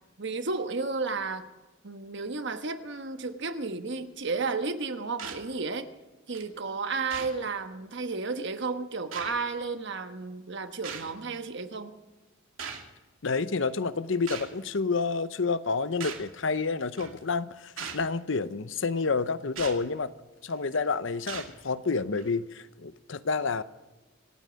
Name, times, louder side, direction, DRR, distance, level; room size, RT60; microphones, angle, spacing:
voice 1, 0.2-1.5 1.8-5.9 6.3-12.0, right 4 dB, 60° right, 8 dB, 1.2 m, -33 dB
sound 1, 5.2-5.4 6.3-6.4 7.1-7.4 8.3-8.4 9.1-9.3 10.8-11.1 12.6-12.9 14.3-14.5 16.0-16.3 17.0-17.2 17.8-18.1 19.6-19.8 20.5-20.8 21.3-21.5 22.2-22.3, right 6 dB, 90° right, 2.4 m, -38 dB
voice 2, 13.2-20.1 20.4-23.6, left 4 dB, 65° left, 14 dB, 0.7 m, -29 dB
26.0 x 9.1 x 5.2 m, 1.1 s
head